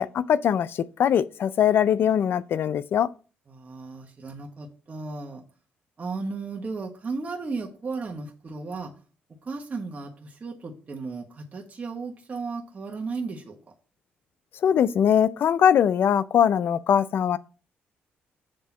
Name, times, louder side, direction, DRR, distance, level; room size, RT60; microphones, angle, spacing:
voice 1, 0.0-3.1 14.6-17.4, left 9 dB, 65° left, 0.4 m, -21 dB
voice 2, 3.5-5.4 6.0-8.9 9.4-13.6, right 4 dB, 35° right, 1.4 m, -35 dB
7.6 x 3.7 x 5.9 m
cardioid pair, 80°, 4 cm